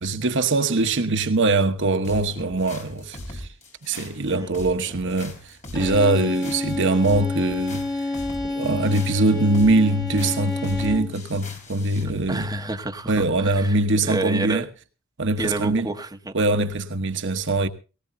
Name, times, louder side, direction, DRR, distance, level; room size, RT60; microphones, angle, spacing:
voice 1, 0.0-3.5 3.8-8.1 8.4-12.5 13.1-14.7 15.2-15.9 16.3-17.7, right 2 dB, 60° right, 1.1 m, -22 dB
sound 1, 2.0-12.1, left 1 dB, 35° left, 4.0 m, -40 dB
Bowed string instrument, 5.7-11.2, left 2 dB, 20° left, 2.7 m, -29 dB
voice 2, 12.3-13.8 14.0-14.7 15.4-16.3, right 2 dB, 20° right, 1.4 m, -29 dB
19.0 x 18.5 x 2.7 m
head